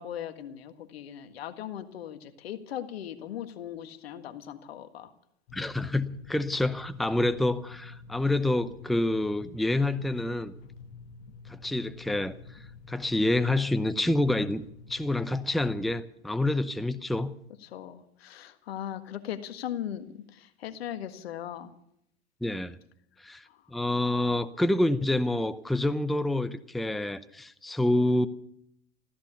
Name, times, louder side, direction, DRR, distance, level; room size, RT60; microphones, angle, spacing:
voice 1, 0.0-5.1 17.6-21.7 23.4-23.6, left 10 dB, 75° left, 1.8 m, -39 dB
sound 1, 5.5-16.0, left 4 dB, 60° left, 1.5 m, -48 dB
voice 2, 5.5-10.5 11.5-14.6 14.9-17.3 22.4-22.8 23.2-28.3, left 1 dB, ahead, 0.7 m, -27 dB
15.0 x 14.0 x 6.9 m
hypercardioid pair, 95°, 31 cm